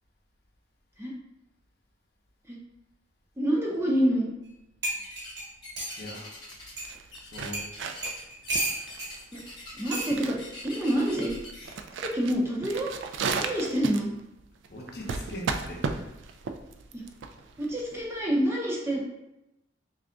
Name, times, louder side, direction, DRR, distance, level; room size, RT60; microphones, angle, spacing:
voice 1, 3.4-4.3 9.3-9.4 9.7-10.4 10.6-11.3 12.0-12.9 13.4-14.1 16.9-17.1 17.6-19.0, equal, 15° right, -3 dB, 0.5 m, -27 dB
sound 1, 4.4-4.5 4.8-6.0 6.8-6.9 7.5-7.7 8.0-9.1 9.9-10.1 11.2-11.5, right 1 dB, 55° right, 1.2 m, -32 dB
sound 2, 5.0-5.4 5.6-6.8 7.1-11.7, left 2 dB, 25° left, 0.7 m, -44 dB
voice 2, 6.0-6.4 7.2-7.7 14.7-15.9, left 1 dB, 55° left, -1 dB, 0.7 m, -40 dB
sound 3, 6.5-18.2, right 5 dB, 75° right, 0.3 m, -35 dB
3.3 x 2.5 x 3.7 m, 0.89 s
head